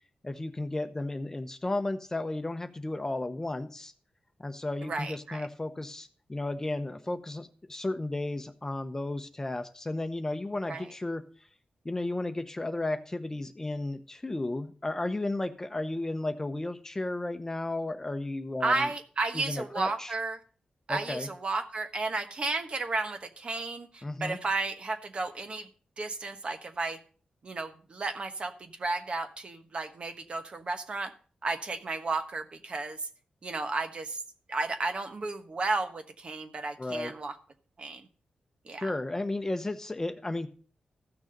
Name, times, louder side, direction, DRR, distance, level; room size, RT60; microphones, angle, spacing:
voice 1, 0.2-3.9 4.4-11.2 11.8-18.9 19.3-20.1 20.9-21.3 24.0-24.4 36.8-37.1 38.8-40.5, left 2 dB, 20° left, 8 dB, 0.9 m, -33 dB
voice 2, 4.8-5.4 10.7-10.9 18.6-20.4 20.9-25.7 26.0-27.0 27.4-31.1 31.4-33.0 33.4-34.2 34.5-37.4 37.8-38.1 38.6-38.9, right 3 dB, 45° right, 7 dB, 1.2 m, -33 dB
14.5 x 6.3 x 5.2 m, 0.42 s
wide cardioid pair, 110°, 3 cm